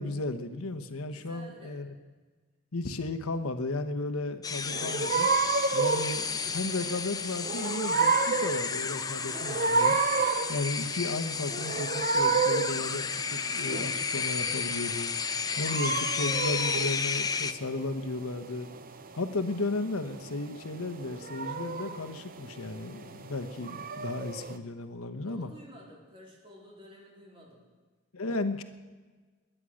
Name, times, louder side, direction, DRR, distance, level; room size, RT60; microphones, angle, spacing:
voice 1, 0.0-2.0 2.7-5.3 5.7-10.0 10.5-15.1 15.6-18.7 19.1-25.5 28.1-28.6, left 2 dB, 85° left, 9 dB, 1.1 m, -34 dB
voice 2, 1.1-1.8 25.2-27.6, equal, 25° right, -3 dB, 4.0 m, -51 dB
sound 1, 4.4-17.5, left 5 dB, 15° left, 0.5 m, -32 dB
sound 2, 4.7-24.6, right 4 dB, 40° right, 0.8 m, -31 dB
21.5 x 9.9 x 6.4 m, 1.4 s
head